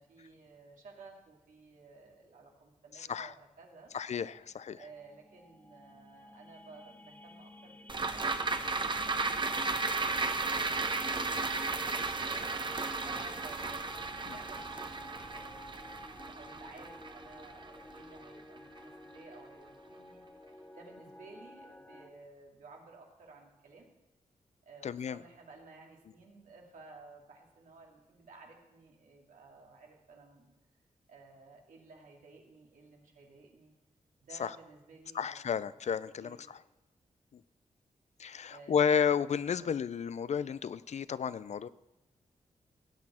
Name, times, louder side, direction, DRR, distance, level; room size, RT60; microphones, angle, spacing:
voice 1, 0.0-3.9 4.4-13.8 14.3-20.2 20.5-23.9 24.6-30.5 31.1-33.7 34.2-35.7 36.2-36.6 38.5-39.0 39.6-39.8, right 3 dB, 90° right, -1 dB, 2.3 m, -55 dB
voice 2, 3.0-3.3 3.9-4.8 14.3-14.4 24.8-25.2 34.4-34.5 35.1-36.6 38.2-41.7, left 7 dB, 55° left, 17 dB, 0.4 m, -32 dB
sound 1, 4.6-22.1, left 1 dB, 15° left, 0.8 m, -52 dB
sound 2, 7.9-18.4 18.8-18.9, right 3 dB, 35° right, 0.9 m, -34 dB
16.5 x 8.5 x 4.3 m, 0.96 s
cardioid pair, 75°, 13 cm